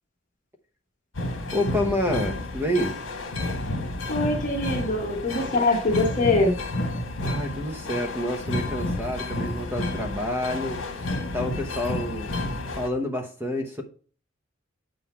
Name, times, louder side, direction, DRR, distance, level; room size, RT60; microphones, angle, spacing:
sound 1, 1.1-12.9, left 2 dB, 70° left, 1.2 m, -30 dB
voice 1, 1.5-3.0 7.2-12.3 12.7-13.8, left 1 dB, 10° right, 4 dB, 0.9 m, -28 dB
voice 2, 4.1-6.5, left 2 dB, 40° left, -1 dB, 1.2 m, -23 dB
8.0 x 3.9 x 4.3 m, 0.41 s
head